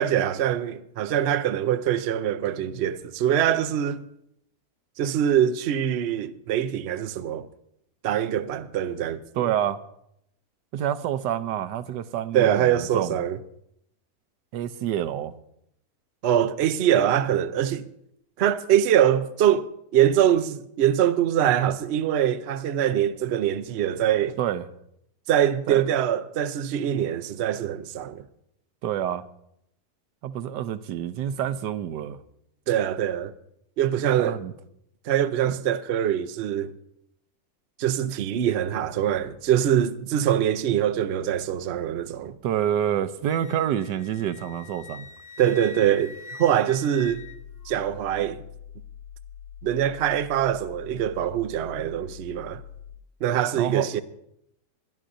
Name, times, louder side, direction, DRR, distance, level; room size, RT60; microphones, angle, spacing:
voice 1, 0.0-4.0 5.0-7.5 8.0-9.2 12.3-13.4 16.2-17.8 18.4-24.4 25.3-28.2 32.7-33.3 33.8-34.4 35.1-36.7 37.8-42.3 45.4-46.1 46.4-47.2 47.7-48.4 49.6-52.6 53.2-54.0, right 10 dB, 70° right, 0.6 m, -23 dB
voice 2, 9.3-9.8 10.7-13.2 14.5-15.3 24.4-24.7 25.7-25.9 28.8-29.3 30.2-32.2 34.2-34.5 42.4-45.1 53.6-53.9, right 10 dB, 85° right, 1.3 m, -27 dB
Wind instrument woodwind instrument, 43.3-47.8, left 4 dB, 50° left, 0.5 m, -44 dB
sound 1, 47.0-53.0, left 8 dB, 75° left, 1.5 m, -44 dB
21.5 x 11.0 x 2.6 m
omnidirectional pair, 1.8 m